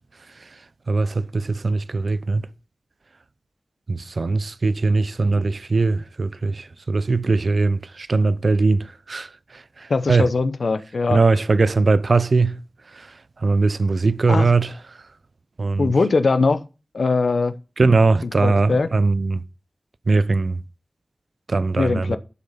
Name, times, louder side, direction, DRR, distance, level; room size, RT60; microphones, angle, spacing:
voice 1, 0.9-2.5 3.9-10.3 11.1-12.6 13.0-13.1 13.4-14.8 15.6-15.9 17.8-19.4 20.1-20.6 21.5-22.2, right 3 dB, 75° right, 0.6 m, -20 dB
voice 2, 9.9-11.2 14.3-14.5 15.8-16.6 16.9-17.5 18.4-18.9 21.8-22.2, left 3 dB, 85° left, 0.8 m, -20 dB
11.5 x 6.7 x 5.7 m
wide cardioid pair, 60°, 0 cm